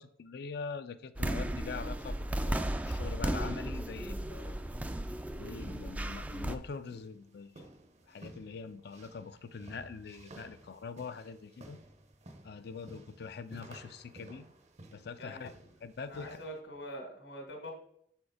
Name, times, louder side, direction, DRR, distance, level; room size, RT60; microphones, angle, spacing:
voice 1, 0.0-4.6 5.4-7.7 8.1-11.8 12.4-14.5 14.9-15.5 15.8-16.3, left 5 dB, 60° left, 11 dB, 0.4 m, -43 dB
sound 1, 1.2-6.6, right 1 dB, 10° right, 0.3 m, -35 dB
sound 2, 5.3-16.6, right 1 dB, 35° right, 0.7 m, -55 dB
voice 2, 15.2-15.6 16.1-17.7, equal, 75° left, 2 dB, 1.7 m, -44 dB
6.9 x 4.4 x 4.8 m, 0.68 s
head